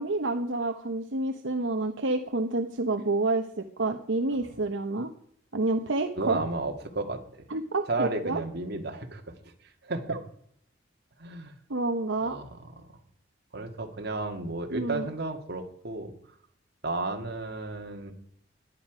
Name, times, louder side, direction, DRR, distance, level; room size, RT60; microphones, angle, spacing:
voice 1, 0.0-5.1 5.5-6.4 7.5-8.4 10.1-10.2 11.7-12.4 14.7-15.1, right 2 dB, 75° right, 5 dB, 1.0 m, -28 dB
voice 2, 6.2-7.2 7.9-10.2 11.2-11.6 12.2-12.9 13.5-16.1 16.8-18.1, right 2 dB, 55° right, 4 dB, 2.0 m, -33 dB
17.5 x 11.0 x 5.0 m, 0.67 s
head